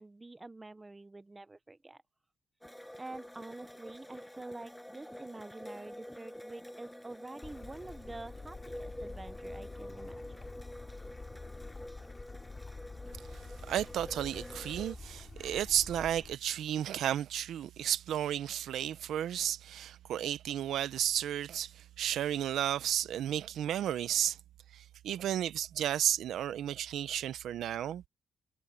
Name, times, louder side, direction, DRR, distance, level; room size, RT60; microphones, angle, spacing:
voice 1, 0.0-2.0 3.0-10.6, right 2 dB, 15° right, 0.9 m, -47 dB
sound 1, 2.6-15.0, equal, 5° left, 6.4 m, -48 dB
Bird / Stream, 7.4-16.4, left 3 dB, 25° left, 2.9 m, -47 dB
voice 2, 13.7-24.4 24.7-28.0, right 11 dB, 75° right, 0.9 m, -33 dB
cardioid pair, 90°, 0 cm